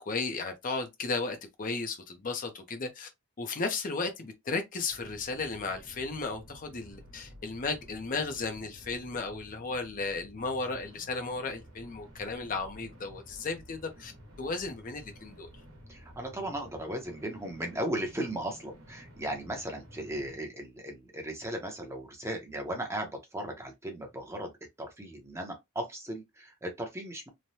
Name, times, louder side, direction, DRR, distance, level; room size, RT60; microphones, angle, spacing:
voice 1, 0.1-3.1 3.4-14.1 14.4-15.5, left 3 dB, 40° left, 0.5 m, -34 dB
sound 1, 4.9-20.4, equal, 75° right, 1.1 m, -52 dB
voice 2, 15.9-24.5 24.8-27.3, right 1 dB, 15° right, 0.7 m, -37 dB
3.1 x 2.1 x 2.7 m
head